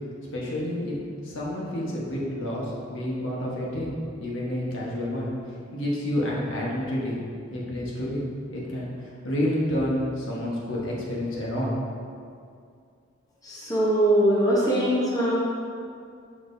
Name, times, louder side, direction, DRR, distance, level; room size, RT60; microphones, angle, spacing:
voice 1, 0.3-1.0 1.2-2.6 2.9-5.3 5.7-7.2 7.5-8.2 8.5-8.9 9.2-12.1, left 1 dB, 70° left, -5 dB, 1.3 m, -29 dB
voice 2, 13.4-15.4, right 1 dB, 15° left, -7 dB, 0.9 m, -22 dB
6.3 x 5.9 x 2.7 m, 2.3 s
head